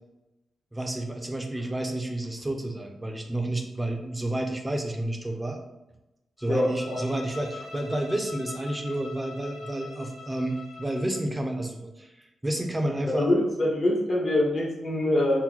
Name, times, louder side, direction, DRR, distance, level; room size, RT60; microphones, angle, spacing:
voice 1, 0.7-5.6 6.4-13.3, right 1 dB, 15° right, 3 dB, 0.6 m, -30 dB
Bowed string instrument, 6.4-11.3, left 3 dB, 80° left, 0.6 m, -43 dB
voice 2, 6.5-7.0 13.1-15.4, left 1 dB, 50° left, -3 dB, 1.1 m, -24 dB
2.9 x 2.1 x 3.7 m, 0.97 s
cardioid pair, 70°, 0 cm